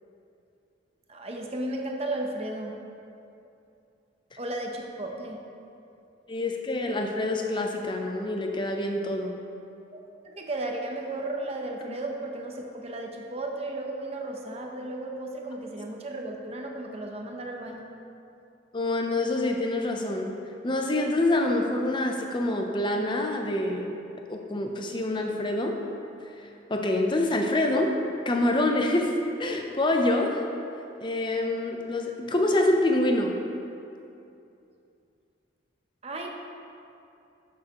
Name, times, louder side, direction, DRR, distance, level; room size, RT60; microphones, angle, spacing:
voice 1, 1.1-2.7 4.4-5.4 9.9-17.9 36.0-36.3, right 2 dB, 30° right, 1 dB, 0.8 m, -34 dB
voice 2, 6.3-9.4 18.7-20.3 20.6-23.9 24.3-25.8 26.7-28.0 28.3-29.1 29.4-30.4 31.0-33.4, left 1 dB, 25° left, 3 dB, 0.7 m, -26 dB
12.5 x 6.5 x 3.0 m, 2.7 s
head